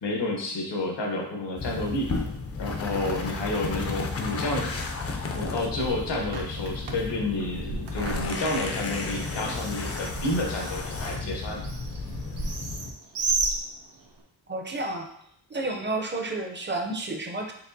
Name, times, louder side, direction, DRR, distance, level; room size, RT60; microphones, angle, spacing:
voice 1, 0.0-2.1 2.6-4.8 5.4-11.6, left 2 dB, 80° left, 0 dB, 1.0 m, -30 dB
sound 1, 1.6-12.9, left 3 dB, 35° left, 0.4 m, -33 dB
Bird, 5.3-14.2, right 3 dB, 80° right, 0.7 m, -35 dB
voice 2, 14.5-15.1 15.5-17.5, right 2 dB, 25° right, 2 dB, 0.5 m, -31 dB
4.4 x 3.2 x 2.7 m, 0.73 s
wide cardioid pair, 130°, 42 cm